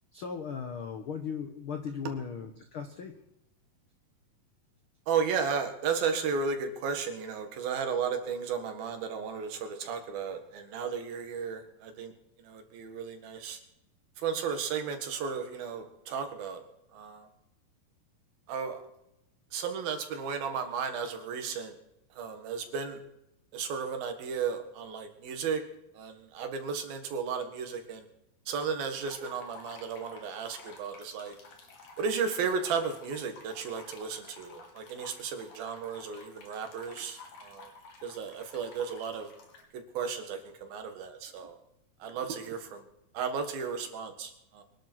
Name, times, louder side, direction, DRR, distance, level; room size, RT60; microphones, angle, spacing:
voice 1, 0.1-3.2, left 6 dB, 85° left, 6 dB, 1.1 m, -37 dB
voice 2, 5.1-12.1 12.4-13.6 14.2-16.6 16.9-17.3 18.5-18.8 19.5-21.7 22.2-23.0 23.5-25.6 26.0-28.1 28.5-31.3 32.0-37.7 38.0-39.3 39.7-41.6 42.0-42.8 43.2-44.6, right 6 dB, 80° right, 6 dB, 3.6 m, -34 dB
sound 1, 29.0-39.6, left 3 dB, 65° left, 4.2 m, -52 dB
24.0 x 11.0 x 4.6 m, 0.84 s
omnidirectional pair, 4.2 m